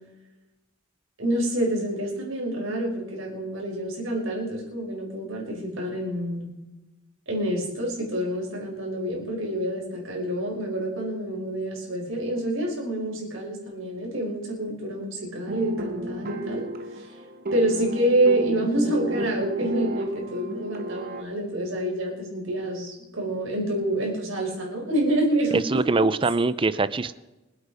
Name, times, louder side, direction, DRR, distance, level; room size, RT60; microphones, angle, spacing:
voice 1, 1.2-6.5 7.3-16.7 17.5-26.0, right 1 dB, 70° right, -1 dB, 5.2 m, -27 dB
sound 1, 15.5-21.2, right 1 dB, 45° right, 1.4 m, -33 dB
voice 2, 25.7-27.2, right 3 dB, 25° right, 16 dB, 0.5 m, -23 dB
25.0 x 8.4 x 5.0 m, 1.0 s
head